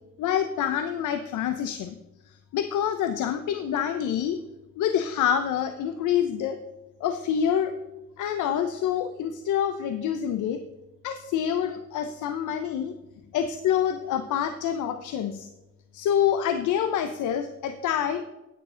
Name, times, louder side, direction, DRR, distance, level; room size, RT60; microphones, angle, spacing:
voice 1, 0.2-2.0 2.5-4.4 4.8-6.6 7.0-7.7 8.2-10.6 11.0-12.9 13.3-15.5 15.9-18.2, left 9 dB, 80° left, 9 dB, 0.7 m, -26 dB
10.0 x 9.5 x 3.8 m, 1.0 s
cardioid pair, 90°, 30 cm